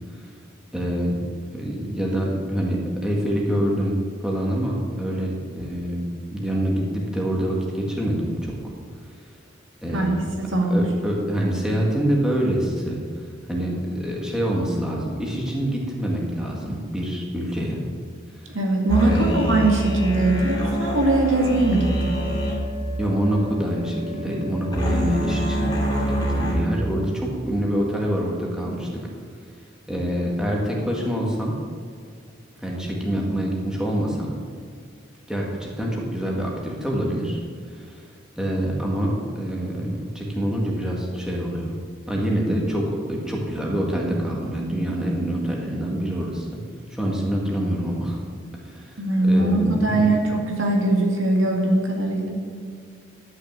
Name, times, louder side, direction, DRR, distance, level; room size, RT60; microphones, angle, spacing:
voice 1, 0.7-1.2 1.5-8.6 9.0-9.3 9.8-10.2 10.7-17.8 18.3-18.6 19.0-19.5 23.0-25.7 26.0-29.1 29.9-31.6 32.6-34.3 35.3-41.8 42.1-46.6 46.9-48.2 48.6-50.3, equal, 5° right, -3 dB, 1.9 m, -26 dB
voice 2, 9.9-10.9 18.5-22.2 49.0-52.3, right 2 dB, 80° right, 0 dB, 2.0 m, -21 dB
sound 1, 18.9-26.5, equal, 20° left, 2.6 m, -26 dB
11.5 x 6.5 x 7.3 m, 2.1 s
head